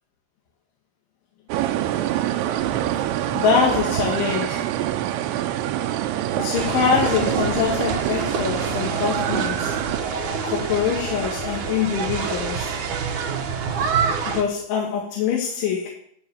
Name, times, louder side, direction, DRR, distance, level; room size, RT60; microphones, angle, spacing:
sound 1, 1.5-10.0, right 12 dB, 80° right, 3.0 m, -25 dB
voice 1, 3.3-4.7 6.4-9.8 10.4-12.8 14.3-15.9, left 6 dB, 85° left, -2 dB, 4.4 m, -24 dB
sound 2, 6.5-14.4, right 6 dB, 65° right, 2.0 m, -27 dB
15.5 x 5.5 x 9.0 m, 0.66 s
omnidirectional pair, 5.3 m